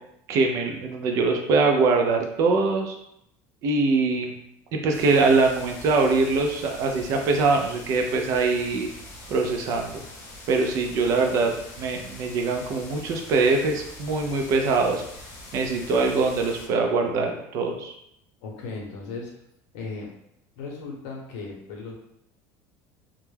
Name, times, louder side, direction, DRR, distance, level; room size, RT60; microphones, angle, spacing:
voice 1, 0.3-3.0 3.6-4.3 4.7-8.9 9.3-10.0 10.5-15.0 15.5-17.9, right 3 dB, 40° right, 3 dB, 0.3 m, -23 dB
sound 1, 4.9-16.7, left 1 dB, 35° left, 0.6 m, -43 dB
voice 2, 18.4-19.3 19.7-20.1 20.6-21.9, left 4 dB, 70° left, -1 dB, 0.8 m, -36 dB
2.2 x 2.0 x 3.2 m, 0.78 s
cardioid pair, 180°, 8 cm